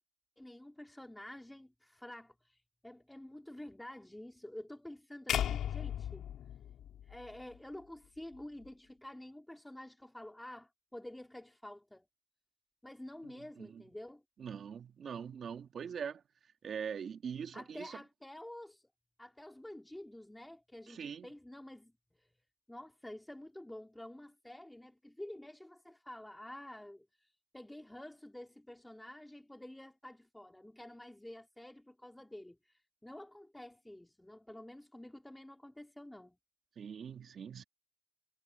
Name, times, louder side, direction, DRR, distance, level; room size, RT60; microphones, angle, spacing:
voice 1, 0.4-6.3 7.0-12.1 12.8-14.2 17.5-18.8 19.2-21.9 22.2-22.3 22.7-27.3 27.5-36.4, left 1 dB, 5° left, 3.7 m, -49 dB
sound 1, 5.3-7.6, left 10 dB, 40° left, 2.2 m, -36 dB
voice 2, 13.2-13.8 14.4-16.2 16.6-18.0 20.9-21.3 36.8-37.6, right 7 dB, 25° right, 2.5 m, -42 dB
supercardioid pair, 140°, 0 cm